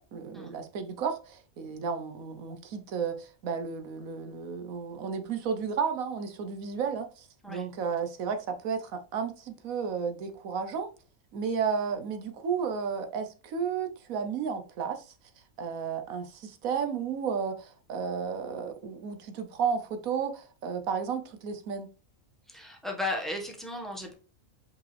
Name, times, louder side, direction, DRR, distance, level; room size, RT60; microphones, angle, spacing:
voice 1, 0.0-10.9 11.3-15.1 15.6-21.9, right 6 dB, 85° right, 1.3 m, -33 dB
voice 2, 22.5-24.1, left 2 dB, ahead, 1.3 m, -35 dB
5.4 x 5.2 x 3.3 m
omnidirectional pair, 1.4 m